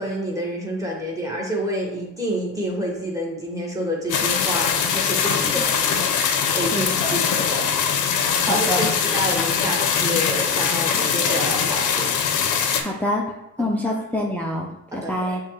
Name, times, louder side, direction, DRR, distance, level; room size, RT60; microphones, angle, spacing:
voice 1, 0.0-6.1 6.5-7.7 8.2-12.2 13.6-14.0 14.9-15.4, equal, 10° right, -3 dB, 1.5 m, -28 dB
sound 1, 4.1-12.8, left 7 dB, 85° left, 0.6 m, -22 dB
voice 2, 6.7-7.2 8.5-8.9 12.8-13.2 13.6-15.4, left 1 dB, 5° left, -2 dB, 0.5 m, -26 dB
6.4 x 2.4 x 3.1 m, 0.90 s
cardioid pair, 90°, 30 cm